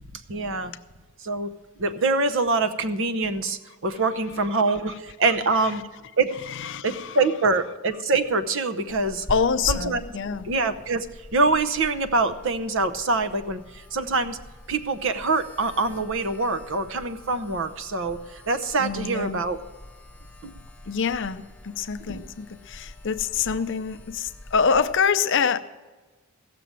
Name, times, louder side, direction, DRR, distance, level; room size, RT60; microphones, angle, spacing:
voice 1, 0.3-0.7 1.2-1.5 1.8-5.8 6.2-6.3 6.8-9.3 9.7-10.0 10.4-11.1 11.3-14.4 14.7-19.6 20.4-20.5 22.1-22.2, right 3 dB, 60° right, 10 dB, 0.8 m, -25 dB
voice 2, 6.4-7.2 9.3-10.5 18.8-19.4 20.9-25.6, left 6 dB, 55° left, 11 dB, 0.6 m, -25 dB
sound 1, 8.9-25.1, left 1 dB, 5° left, 0.8 m, -43 dB
16.0 x 6.8 x 7.5 m, 1.3 s
head